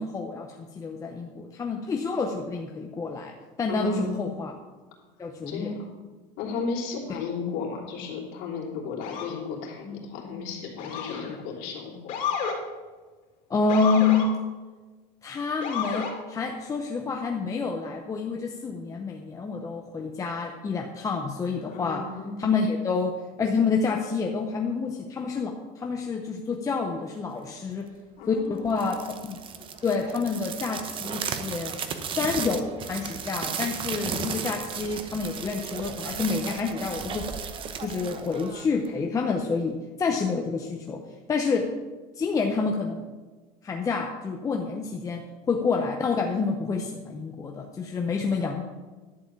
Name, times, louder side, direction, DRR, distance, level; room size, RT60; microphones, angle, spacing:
voice 1, 0.0-4.5 5.2-5.7 13.5-14.4 15.2-22.1 22.4-27.9 28.3-29.4 29.8-31.7 32.1-37.4 37.8-41.0 41.3-41.7 42.2-43.1 43.6-48.6, left 4 dB, 20° left, 2 dB, 0.7 m, -28 dB
voice 2, 3.7-4.1 5.5-5.9 6.4-12.2 21.7-22.4 28.2-28.8, left 4 dB, 65° left, -3 dB, 3.1 m, -34 dB
Motor vehicle (road) / Siren, 9.0-9.4 10.8-11.3 12.1-12.6 13.7-14.3 15.6-16.1, left 6 dB, 45° left, 2.6 m, -31 dB
sound 1, 28.7-39.0, right 7 dB, 30° right, 0.8 m, -35 dB
11.5 x 4.9 x 8.4 m, 1.3 s
cardioid pair, 145°, 17 cm